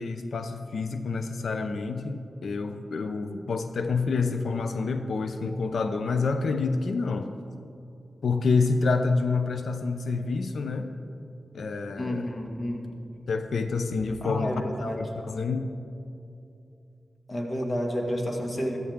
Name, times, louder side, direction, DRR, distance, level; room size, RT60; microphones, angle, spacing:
voice 1, 0.0-7.3 8.2-10.9 11.5-12.3 13.3-15.7, left 4 dB, 75° left, 8 dB, 0.6 m, -28 dB
voice 2, 12.0-13.0 14.2-15.0 17.3-18.8, equal, 40° left, 1 dB, 2.1 m, -30 dB
14.0 x 14.0 x 3.7 m, 2.7 s
cardioid pair, 60°, 0 cm